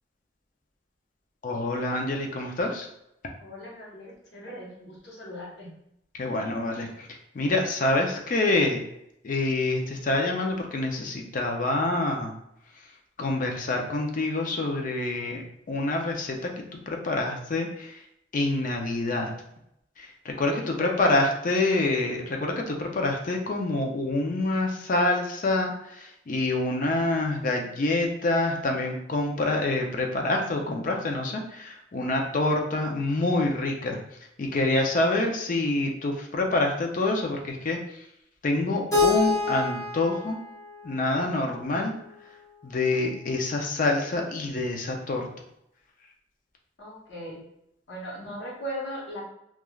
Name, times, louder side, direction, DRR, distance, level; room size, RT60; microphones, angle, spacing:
voice 1, 1.4-2.9 6.1-8.8 9.2-12.3 13.2-15.4 15.7-18.0 18.3-19.3 20.0-34.0 34.4-38.0 38.4-40.4 40.8-41.9 42.6-45.3, left 2 dB, 45° left, 2 dB, 0.4 m, -26 dB
voice 2, 3.4-5.7 20.4-21.3 46.8-47.4 47.9-49.2, equal, 65° left, -4 dB, 0.9 m, -38 dB
Keyboard (musical), 38.9-41.8, left 4 dB, 20° left, 1.0 m, -27 dB
3.1 x 2.3 x 2.3 m, 0.79 s
head